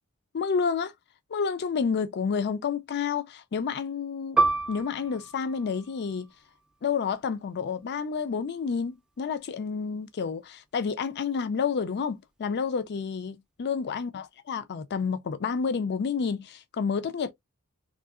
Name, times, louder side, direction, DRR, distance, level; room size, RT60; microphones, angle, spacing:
voice 1, 0.3-0.9 1.3-4.4 4.7-6.3 6.8-17.3, left 6 dB, 50° left, 0.4 m, -29 dB
Piano, 4.4-9.4 9.7-9.9 10.7-11.0, right 3 dB, 5° right, 0.5 m, -31 dB
3.7 x 2.7 x 2.3 m
head